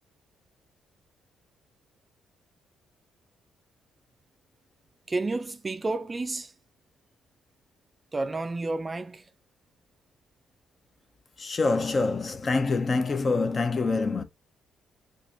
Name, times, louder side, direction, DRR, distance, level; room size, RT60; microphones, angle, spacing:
voice 1, 5.1-6.5 8.1-9.3, right 3 dB, 25° right, 0.4 m, -31 dB
voice 2, 11.4-14.2, left 3 dB, 35° left, 0.6 m, -25 dB
2.9 x 2.5 x 3.9 m
cardioid pair, 90°, 0 cm